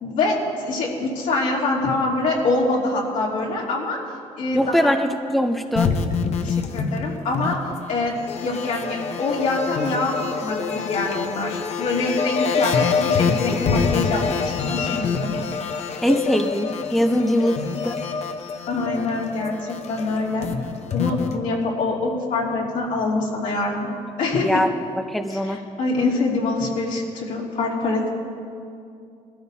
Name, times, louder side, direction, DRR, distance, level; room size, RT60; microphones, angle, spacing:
voice 1, 0.0-4.0 4.4-5.0 6.4-7.6 7.9-15.4 17.1-17.2 18.7-20.5 20.9-23.9 24.2-24.6 25.3-28.1, left 3 dB, 75° left, -4 dB, 3.0 m, -25 dB
voice 2, 4.5-5.9 16.0-17.6 17.8-18.0 24.4-24.7 25.1-25.6, equal, ahead, 6 dB, 0.6 m, -21 dB
sound 1, 5.7-21.4, left 5 dB, 55° left, 0.9 m, -26 dB
20.5 x 13.5 x 2.8 m, 2.5 s
cardioid pair, 110°, 13 cm